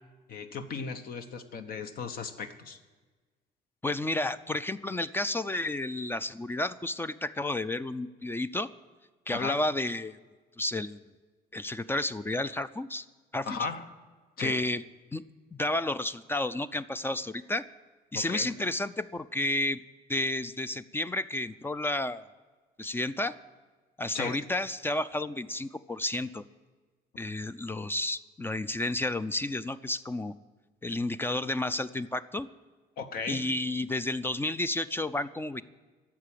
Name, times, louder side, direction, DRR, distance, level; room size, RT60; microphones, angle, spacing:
voice 1, 0.3-2.8 9.3-9.6 13.5-13.9 14.4-14.6 18.1-18.5 24.1-24.4 33.0-33.5, left 5 dB, 60° left, 8 dB, 1.0 m, -36 dB
voice 2, 3.8-8.7 9.3-10.2 10.6-11.0 11.5-13.1 13.3-13.6 14.4-14.8 15.1-15.2 15.5-17.6 18.1-19.8 20.1-22.2 22.8-23.4 24.0-26.4 27.2-30.3 30.8-32.5 33.3-35.6, left 2 dB, 15° left, 14 dB, 0.4 m, -31 dB
11.5 x 7.6 x 10.0 m, 1.4 s
cardioid pair, 110°, 17 cm